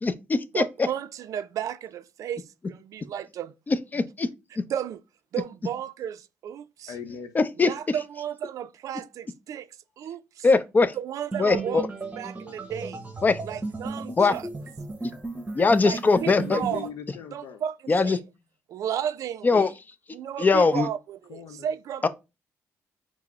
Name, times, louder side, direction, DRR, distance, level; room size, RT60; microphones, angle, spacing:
voice 1, 0.0-0.6 3.7-4.3 7.3-7.7 10.4-10.9 11.4-11.9 13.2-13.4 14.2-14.3 15.5-16.6 17.9-18.2 19.4-19.7 20.4-20.9 22.0-22.1, left 4 dB, 30° left, 0.5 m, -21 dB
voice 2, 0.5-3.5 4.7-5.0 5.3-6.9 7.6-9.7 10.0-10.5 11.0-11.9 12.2-13.0 13.4-14.5 15.8-16.9 17.3-18.2 18.7-19.7 20.1-22.1, right 9 dB, 70° right, 0.3 m, -33 dB
voice 3, 6.9-7.3 16.4-17.6 21.3-21.7, left 7 dB, 85° left, 0.6 m, -39 dB
sound 1, 11.3-16.9, right 2 dB, 25° right, 1.0 m, -35 dB
4.7 x 2.0 x 4.6 m
cardioid pair, 80°, 6 cm